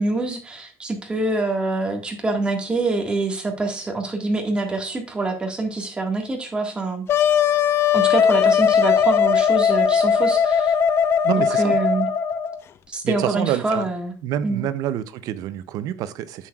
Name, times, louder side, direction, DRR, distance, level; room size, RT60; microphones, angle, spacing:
voice 1, 0.0-7.0 7.9-10.8 11.4-12.1 12.9-14.1 14.4-14.7, right 2 dB, 15° right, 1.7 m, -25 dB
Wind instrument woodwind instrument, 7.1-12.6, left 7 dB, 35° left, 0.5 m, -19 dB
voice 2, 11.2-11.8 13.0-13.9 14.2-16.5, right 11 dB, 60° right, 0.6 m, -27 dB
11.0 x 7.6 x 2.4 m
cardioid pair, 155°, 7 cm